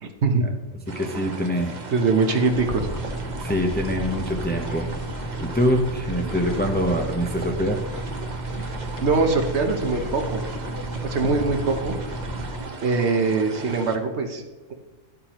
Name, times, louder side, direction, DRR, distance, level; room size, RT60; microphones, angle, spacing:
voice 1, 0.0-0.5 1.9-2.9 9.0-10.4 11.0-11.9 12.8-14.4, right 4 dB, 65° right, 5 dB, 1.3 m, -22 dB
sound 1, 0.9-14.0, right 3 dB, 40° right, 0.9 m, -37 dB
voice 2, 1.0-1.8 3.4-4.9 5.4-7.8, equal, 10° left, 3 dB, 0.7 m, -24 dB
sound 2, 2.5-12.6, right 1 dB, 30° left, 0.3 m, -33 dB
12.0 x 8.7 x 3.0 m, 1.2 s
omnidirectional pair, 1.3 m